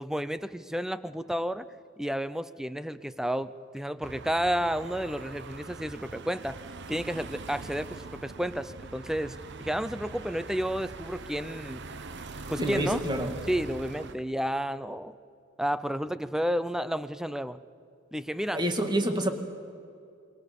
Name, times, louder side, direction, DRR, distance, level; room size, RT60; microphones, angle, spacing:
voice 1, 0.0-1.7 2.0-6.6 6.9-11.8 12.5-13.0 13.5-15.1 15.6-17.6 18.1-18.6, equal, ahead, 14 dB, 0.6 m, -31 dB
sound 1, 4.0-14.2, right 3 dB, 60° right, 1.0 m, -43 dB
voice 2, 12.6-13.3 18.5-19.3, right 1 dB, 20° right, 5 dB, 2.1 m, -27 dB
27.0 x 22.5 x 7.0 m, 2.5 s
head